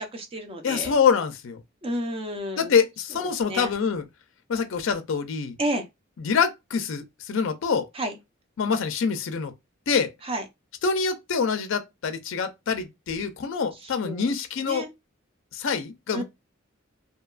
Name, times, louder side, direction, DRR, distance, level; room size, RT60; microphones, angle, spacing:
voice 1, 0.0-0.9 1.8-2.7 3.5-3.7 5.6-5.9 7.9-8.1 10.2-10.4 13.8-14.3 14.6-14.9 16.1-16.2, right 1 dB, 30° right, 0.6 m, -31 dB
voice 2, 0.6-1.6 2.6-4.0 4.5-5.5 6.2-7.9 8.6-9.5 9.9-10.1 10.8-14.9 15.5-16.2, left 6 dB, 65° left, 0.4 m, -25 dB
2.7 x 2.2 x 2.3 m
head